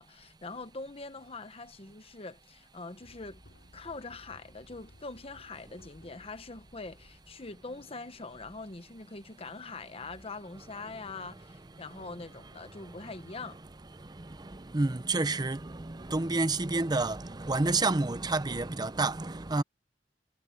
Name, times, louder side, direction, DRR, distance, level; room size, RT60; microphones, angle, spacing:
voice 1, 0.0-3.4 3.7-13.6, left 3 dB, 35° left, 1.1 m, -43 dB
sound 1, 3.0-8.2, left 1 dB, 85° left, 3.5 m, -58 dB
voice 2, 13.9-19.6, right 3 dB, 25° right, 0.7 m, -30 dB
head